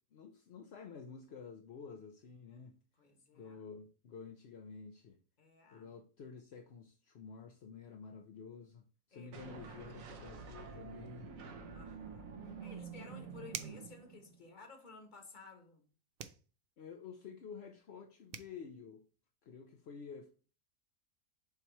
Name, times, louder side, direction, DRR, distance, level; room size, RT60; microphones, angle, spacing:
voice 1, 0.0-2.8 3.3-5.2 5.7-11.3 12.4-12.5 16.8-19.0 19.4-20.3, left 5 dB, 60° left, 0.7 m, -50 dB
voice 2, 3.0-3.6 5.4-5.9 9.1-10.0 11.7-12.3 12.6-15.9, left 4 dB, 35° left, 1.3 m, -56 dB
sound 1, 9.3-14.5, right 5 dB, 65° right, 1.2 m, -48 dB
sound 2, 13.5-13.9 16.2-16.5 18.0-18.1 18.3-18.6, right 8 dB, 85° right, 0.5 m, -44 dB
6.9 x 3.1 x 4.5 m
omnidirectional pair, 1.6 m